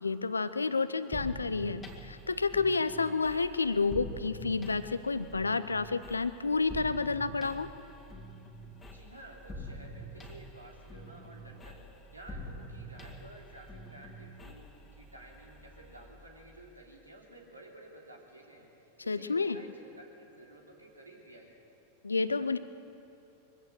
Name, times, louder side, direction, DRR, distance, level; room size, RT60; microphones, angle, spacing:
voice 1, 0.0-7.7 19.1-19.6 22.0-22.6, left 4 dB, 80° left, 14 dB, 0.7 m, -30 dB
sound 1, 1.1-16.8, equal, 15° left, 2.1 m, -46 dB
voice 2, 8.8-11.8 12.1-21.5, right 1 dB, 80° right, -1 dB, 3.2 m, -53 dB
23.0 x 15.5 x 7.8 m, 2.8 s
figure-of-eight pair, 90°, 0 cm